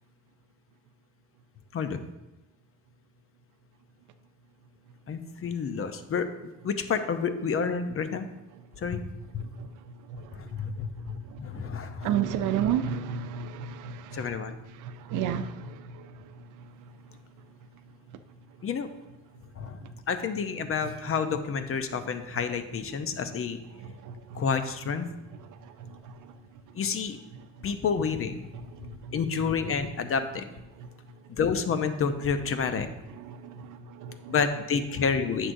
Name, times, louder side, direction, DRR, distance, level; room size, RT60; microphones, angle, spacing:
voice 1, 1.7-2.0 5.1-6.3 6.6-8.3 8.8-9.0 9.3-9.4 10.3-12.1 14.1-14.6 18.6-18.9 19.6-23.6 24.3-25.1 26.7-27.2 27.6-28.4 29.1-30.4 31.3-32.9 34.3-35.5, left 6 dB, 45° left, 0.8 m, -29 dB
voice 2, 8.5-8.9 9.4-18.7 19.3-20.0 20.6-21.0 21.9-22.0 22.3-22.4 22.9-23.4 23.7-24.5 25.2-26.9 27.3-27.8 28.5-29.2 30.0-30.1 30.7-31.3 32.0-32.1 33.1-34.4, right 8 dB, 85° right, 0.6 m, -36 dB
9.9 x 6.3 x 2.7 m
cardioid pair, 90°, 30 cm